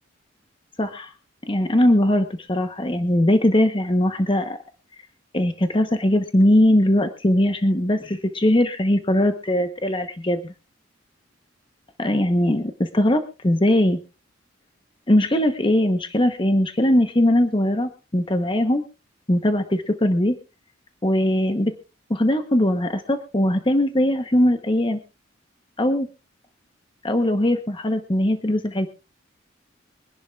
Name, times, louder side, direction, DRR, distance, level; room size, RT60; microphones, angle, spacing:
voice 1, 0.8-1.1 1.5-4.6 5.3-10.5 12.0-14.0 15.1-18.8 19.3-20.4 21.0-21.7 22.1-25.0 25.8-26.1 27.0-28.9, left 1 dB, 25° left, 7 dB, 1.0 m, -20 dB
24.0 x 11.0 x 2.4 m, 0.31 s
head